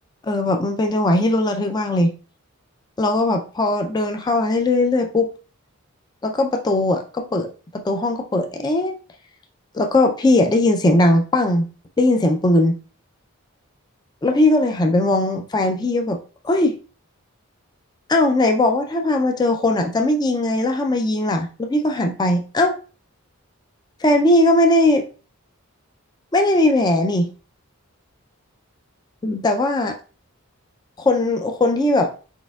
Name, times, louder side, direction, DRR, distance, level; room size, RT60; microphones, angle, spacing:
voice 1, 0.2-2.1 3.0-5.3 6.2-9.0 9.7-11.7 12.0-12.8 14.2-16.8 18.1-22.8 24.0-25.1 26.3-27.3 29.2-30.0 31.0-32.1, left 2 dB, 20° left, 5 dB, 0.3 m, -19 dB
4.4 x 4.2 x 2.3 m, 0.36 s
head